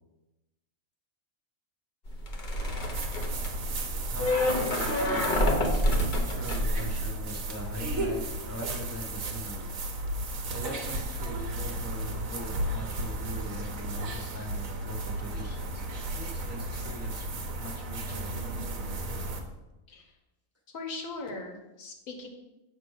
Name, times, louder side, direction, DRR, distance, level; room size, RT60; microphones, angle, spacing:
sound 1, 2.1-7.6 7.9-8.3, left 1 dB, 40° left, 0.9 m, -28 dB
sound 2, 2.6-19.4, right 2 dB, 75° right, 1.3 m, -34 dB
voice 1, 4.0-9.7 10.5-15.8 16.1-18.3, left 1 dB, 15° right, 0 dB, 0.8 m, -42 dB
voice 2, 20.7-22.3, left 3 dB, 75° left, 3 dB, 1.4 m, -39 dB
7.4 x 3.4 x 6.3 m, 1.0 s
omnidirectional pair, 1.4 m